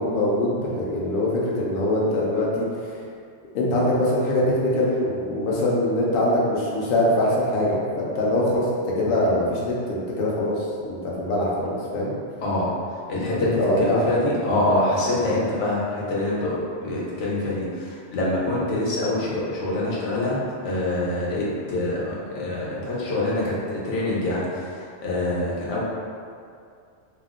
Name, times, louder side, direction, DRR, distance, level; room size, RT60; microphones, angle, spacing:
voice 1, 0.0-3.0 3.5-8.7 9.0-12.1 13.5-14.0, left 1 dB, 60° left, -5 dB, 0.7 m, -23 dB
voice 2, 12.4-12.7 13.1-25.8, left 1 dB, 85° left, -6 dB, 1.0 m, -25 dB
2.5 x 2.1 x 3.5 m, 2.2 s
omnidirectional pair, 1.2 m